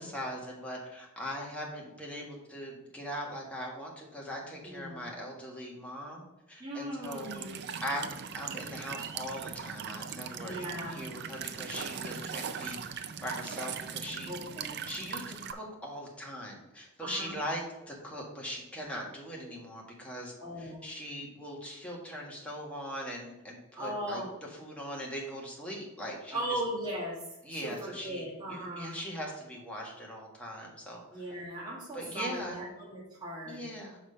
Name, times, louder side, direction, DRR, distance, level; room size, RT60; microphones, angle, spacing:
voice 1, 0.0-7.4 7.8-14.3 14.9-26.6 27.4-31.2 31.9-32.6 33.5-34.0, equal, 5° left, -3 dB, 1.6 m, -40 dB
voice 2, 4.6-4.9 6.6-7.6 10.3-11.0 14.3-14.8 17.0-17.4 20.4-20.8 23.7-24.3 26.3-27.1 27.5-28.9 31.1-33.6, right 1 dB, 20° right, -6 dB, 1.7 m, -38 dB
Walk footsteps / Chirp tweet / Stream, 7.0-15.5, right 7 dB, 50° right, 0.5 m, -40 dB
6.1 x 5.1 x 5.5 m, 0.98 s
head